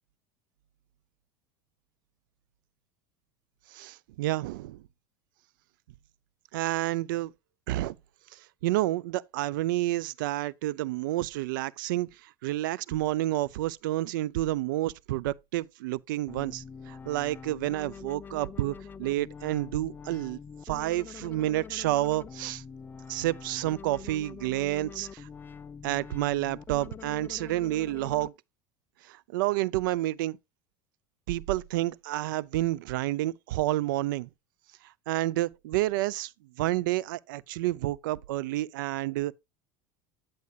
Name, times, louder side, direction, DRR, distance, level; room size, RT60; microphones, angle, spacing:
voice 1, 3.7-4.8 6.5-7.3 7.7-8.0 8.3-20.4 20.6-22.6 23.1-25.3 25.8-28.3 29.0-30.4 31.3-34.3 35.1-36.3 36.6-39.3, right 16 dB, 80° right, 0.5 m, -29 dB
sound 1, 16.3-28.3, left 6 dB, 20° left, 0.4 m, -45 dB
9.6 x 7.7 x 2.3 m
supercardioid pair, 115°, 11 cm